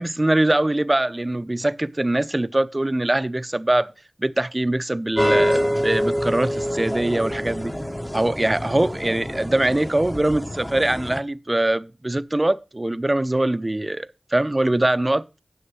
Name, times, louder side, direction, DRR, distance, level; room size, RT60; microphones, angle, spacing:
voice 1, 0.0-3.9 4.2-7.7 8.1-15.2, right 1 dB, 30° right, 0.6 m, -22 dB
sound 1, 5.2-11.2, equal, 15° left, 1.0 m, -26 dB
10.0 x 6.5 x 4.8 m
wide cardioid pair, 45°, 0 cm